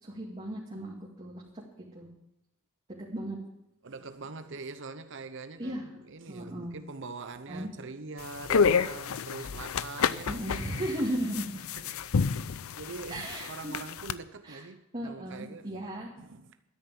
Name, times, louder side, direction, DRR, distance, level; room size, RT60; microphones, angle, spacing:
voice 1, 0.0-1.4 1.9-2.1 3.1-3.4 5.6-5.8 6.3-6.7 7.5-7.7 10.3-11.6 13.1-13.7 14.4-14.6 14.9-16.1, right 1 dB, 30° right, 2.3 m, -35 dB
voice 2, 3.8-10.6 11.1-11.4 11.8-15.8 16.2-16.5, right 3 dB, 65° right, 0.9 m, -44 dB
sound 1, 8.2-14.1, left 6 dB, 85° left, 0.6 m, -29 dB
12.5 x 10.5 x 7.6 m
head